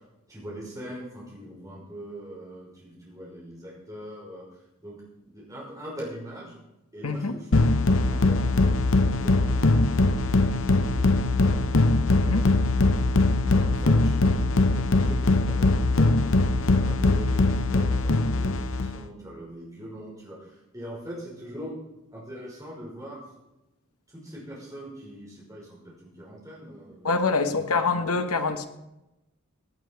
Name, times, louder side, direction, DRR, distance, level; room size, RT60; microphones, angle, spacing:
voice 1, 0.3-5.0 5.2-6.6 6.9-7.5 8.1-12.4 13.4-21.8 22.1-23.2 24.1-27.2 27.5-27.9, equal, 15° right, 5.6 m, -42 dB
voice 2, 7.0-7.4 12.2-12.4 27.0-28.7, left 4 dB, 85° left, 1.2 m, -25 dB
sound 1, 7.5-19.0, left 2 dB, 65° left, 0.8 m, -21 dB
17.0 x 8.8 x 4.8 m
head